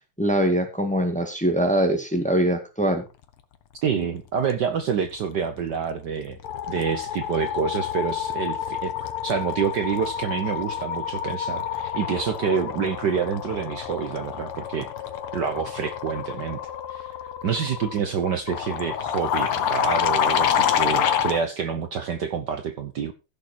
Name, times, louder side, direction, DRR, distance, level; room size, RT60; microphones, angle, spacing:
voice 1, 0.2-3.0, right 1 dB, 5° left, 4 dB, 1.9 m, -22 dB
voice 2, 3.8-6.4 6.7-8.9 9.2-14.9 15.3-16.6 16.9-17.1 17.4-23.1, right 7 dB, 60° right, 8 dB, 1.4 m, -27 dB
sound 1, 5.6-5.9 6.2-21.4, left 9 dB, 85° left, 2.0 m, -28 dB
15.5 x 6.6 x 4.5 m, 0.28 s
omnidirectional pair, 2.4 m